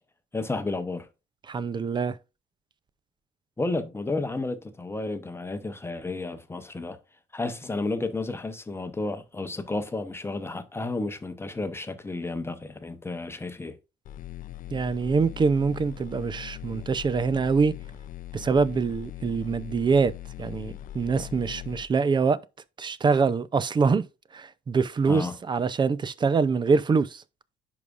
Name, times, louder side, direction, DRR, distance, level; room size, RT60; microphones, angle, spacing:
voice 1, 0.3-1.1 3.6-7.0 7.3-13.8 25.1-25.4, left 2 dB, 15° left, 0.8 m, -32 dB
voice 2, 1.5-2.2 14.7-17.7 18.3-20.1 20.4-22.4 22.8-24.0 24.3-27.2, right 5 dB, 25° right, 0.5 m, -24 dB
sound 1, 14.0-21.8, left 13 dB, 50° left, 0.5 m, -40 dB
10.5 x 4.9 x 2.5 m
cardioid pair, 110°, 17 cm